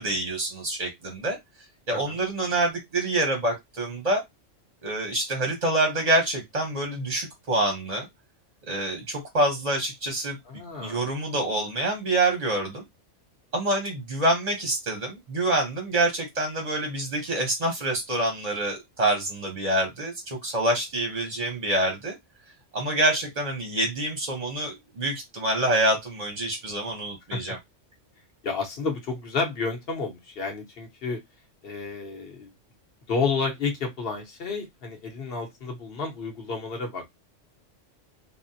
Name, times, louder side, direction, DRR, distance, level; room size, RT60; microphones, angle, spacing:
voice 1, 0.0-1.4 1.9-4.2 4.8-8.1 8.7-10.4 10.8-12.8 13.5-22.1 22.7-27.6, right 1 dB, 40° right, 0.7 m, -26 dB
voice 2, 10.4-11.1 27.3-27.6 28.4-31.2 31.6-32.5 33.1-37.1, left 4 dB, 55° left, 1.0 m, -31 dB
3.5 x 2.1 x 2.6 m
omnidirectional pair, 1.3 m